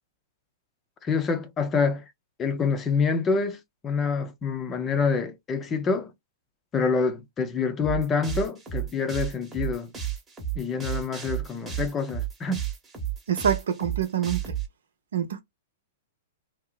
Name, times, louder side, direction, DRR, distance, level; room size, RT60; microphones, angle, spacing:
voice 1, 1.0-2.0 2.4-6.1 6.7-9.9 10.6-12.6, left 5 dB, 25° left, 0.6 m, -26 dB
sound 1, 7.8-14.7, right 10 dB, 15° right, 1.1 m, -32 dB
voice 2, 13.3-14.5 15.1-15.4, right 8 dB, 70° right, 0.6 m, -26 dB
2.7 x 2.0 x 2.3 m
figure-of-eight pair, 105°, 0 cm